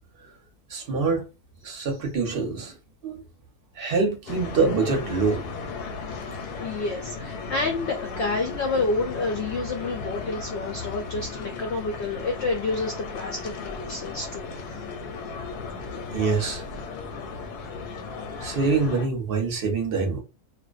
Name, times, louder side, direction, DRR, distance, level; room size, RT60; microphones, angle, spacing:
voice 1, 0.7-1.2 1.6-2.7 3.0-3.2 3.8-5.5 15.9-16.6 18.4-20.2, right 4 dB, 50° right, 0.7 m, -25 dB
sound 1, 4.3-19.1, left 4 dB, 85° left, 1.1 m, -36 dB
voice 2, 6.6-14.5, left 3 dB, 70° left, 0.6 m, -29 dB
2.5 x 2.1 x 2.3 m
omnidirectional pair, 1.6 m